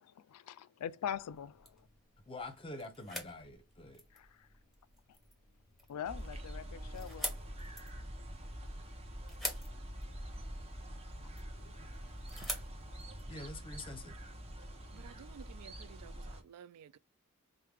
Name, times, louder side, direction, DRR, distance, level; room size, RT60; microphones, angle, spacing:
voice 1, 0.3-1.8 4.1-4.3 5.9-7.3, left 9 dB, 85° left, 0.4 m, -42 dB
sound 1, 1.1-14.0, left 1 dB, ahead, 1.0 m, -48 dB
voice 2, 2.3-4.0 13.3-14.1, left 2 dB, 25° left, 0.7 m, -46 dB
sound 2, 6.0-16.4, equal, 30° right, 0.8 m, -46 dB
voice 3, 13.3-13.8 14.9-17.0, right 8 dB, 85° right, 0.3 m, -55 dB
4.6 x 2.2 x 3.3 m
head